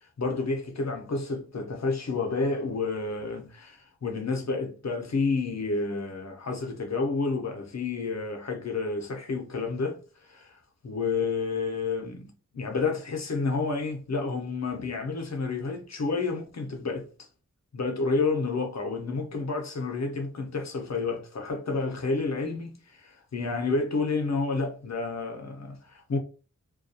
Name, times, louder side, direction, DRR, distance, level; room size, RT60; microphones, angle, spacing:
voice 1, 0.2-17.3 17.7-26.2, left 3 dB, 55° left, 0.7 m, -30 dB
2.3 x 2.2 x 2.7 m
cardioid pair, 45°, 31 cm